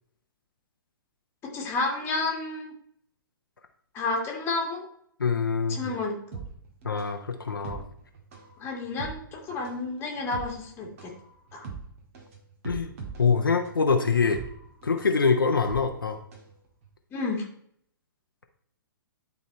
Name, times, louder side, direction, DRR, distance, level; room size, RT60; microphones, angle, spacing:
voice 1, 1.5-2.7 3.9-4.9 5.7-6.2 8.6-11.1 11.5-11.7 17.1-17.4, left 3 dB, 20° left, 0 dB, 1.8 m, -30 dB
voice 2, 5.2-5.9 6.8-7.8 12.6-12.9 13.2-14.4 14.8-16.2, left 5 dB, 70° left, 4 dB, 0.8 m, -24 dB
sound 1, 6.3-16.5 16.8-16.9, right 5 dB, 40° right, 1.7 m, -42 dB
10.5 x 4.1 x 4.2 m, 0.68 s
figure-of-eight pair, 115°, 12 cm